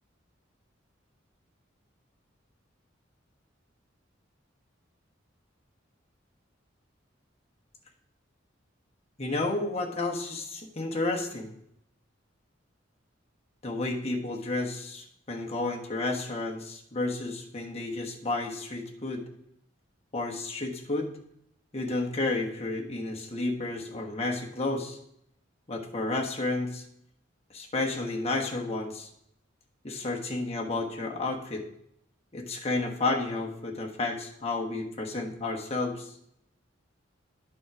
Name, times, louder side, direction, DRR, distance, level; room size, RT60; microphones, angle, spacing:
voice 1, 9.2-11.5 13.6-19.2 20.1-21.2 21.7-25.0 25.7-26.8 27.5-29.1 29.8-31.7 32.3-36.1, left 2 dB, 35° left, 1 dB, 1.2 m, -31 dB
9.5 x 4.7 x 6.0 m, 0.74 s
head